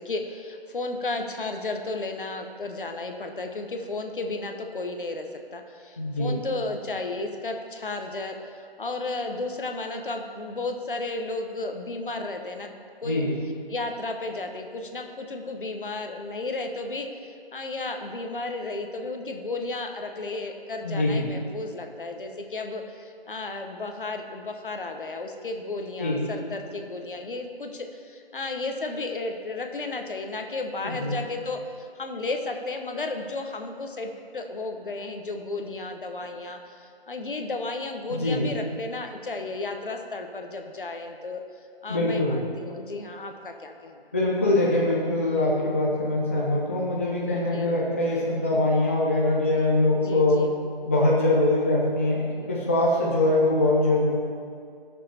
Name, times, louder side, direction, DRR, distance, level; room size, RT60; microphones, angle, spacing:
voice 1, 0.0-12.7 13.0-13.2 13.7-41.4 41.8-44.0 47.5-47.8 49.9-50.5, left 2 dB, 60° left, 5 dB, 1.2 m, -33 dB
voice 2, 6.0-6.3 13.0-13.3 20.8-21.2 26.0-26.2 30.8-31.1 38.1-38.5 41.9-42.4 44.1-50.4 50.8-52.2 52.5-54.1, left 2 dB, 15° left, -6 dB, 0.6 m, -23 dB
17.0 x 6.6 x 3.5 m, 2.3 s
figure-of-eight pair, 155°, 30 cm